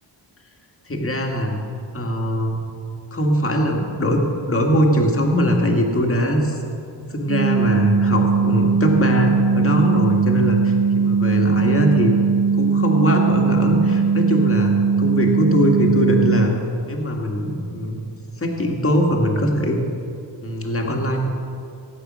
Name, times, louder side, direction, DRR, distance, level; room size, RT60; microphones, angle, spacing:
voice 1, 0.9-1.6 1.9-2.6 3.1-4.2 4.5-6.6 6.9-12.1 12.6-16.5 16.9-18.0 18.4-19.8 20.4-21.2, equal, 30° left, 1 dB, 1.8 m, -21 dB
sound 1, 7.3-16.5, right 5 dB, 70° right, 0.9 m, -19 dB
16.5 x 8.9 x 6.2 m, 2.5 s
wide cardioid pair, 125°, 47 cm